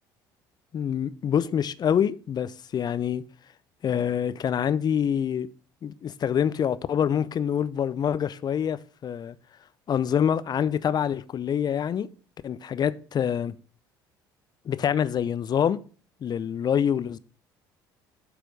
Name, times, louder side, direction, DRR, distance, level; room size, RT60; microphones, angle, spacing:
voice 1, 0.7-3.2 3.8-5.5 5.8-9.4 9.9-12.1 12.4-13.5 14.7-15.8 16.2-17.2, left 8 dB, 40° left, 0.5 m, -26 dB
7.6 x 4.9 x 5.2 m
hypercardioid pair, 55°, 11 cm